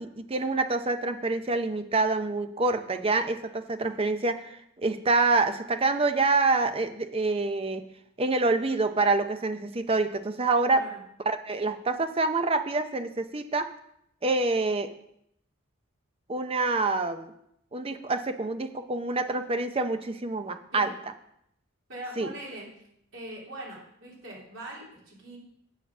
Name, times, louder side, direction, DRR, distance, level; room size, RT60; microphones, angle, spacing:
voice 1, 0.0-7.9 8.2-10.8 11.3-13.7 14.2-14.9 16.3-17.3 17.7-20.9 22.2-22.3, right 3 dB, 30° right, 8 dB, 0.6 m, -26 dB
voice 2, 21.9-22.7 23.1-25.4, right 1 dB, 70° right, -4 dB, 3.2 m, -41 dB
7.2 x 7.0 x 5.9 m, 0.75 s
head